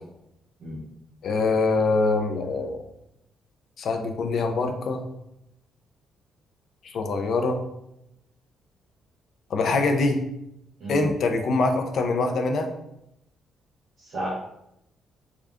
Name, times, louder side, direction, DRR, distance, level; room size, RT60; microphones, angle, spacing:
voice 1, 1.2-2.8 3.8-5.0 6.8-7.6 9.5-10.2 10.9-12.7, left 3 dB, 50° left, 5 dB, 0.4 m, -24 dB
voice 2, 14.0-14.3, right 1 dB, 45° right, -9 dB, 0.9 m, -32 dB
3.6 x 2.3 x 3.5 m, 0.83 s
cardioid pair, 170°, 0 cm